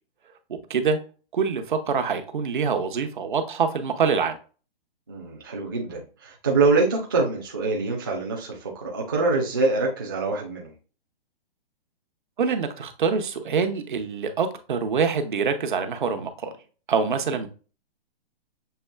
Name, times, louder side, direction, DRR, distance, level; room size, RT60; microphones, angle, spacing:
voice 1, 1.3-4.4 12.4-16.5 16.9-17.5, right 5 dB, 55° right, 0.9 m, -25 dB
voice 2, 5.1-10.7, right 3 dB, 25° right, 0.5 m, -25 dB
6.8 x 3.2 x 2.2 m
hypercardioid pair, 180°, 29 cm